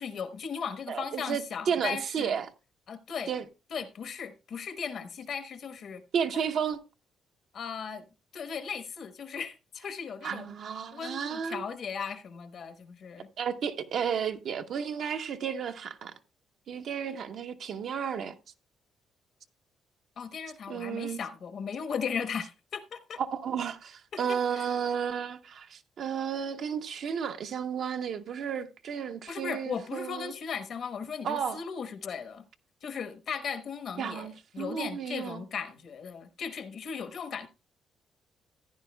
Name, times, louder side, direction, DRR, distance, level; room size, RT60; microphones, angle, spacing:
voice 1, 0.0-2.4 2.9-3.3 3.7-6.0 7.5-8.1 8.3-10.5 10.9-13.3 20.2-23.2 24.1-24.7 29.3-32.5 32.8-37.5, left 6 dB, 60° left, 1.1 m, -37 dB
voice 2, 0.9-2.5 3.3-3.4 6.1-6.8 10.2-11.6 13.4-16.1 16.7-18.3 20.7-21.2 23.2-30.3 31.2-31.6 34.0-35.4, right 7 dB, 65° right, 0.8 m, -32 dB
15.0 x 9.8 x 2.2 m
cardioid pair, 90°, 0 cm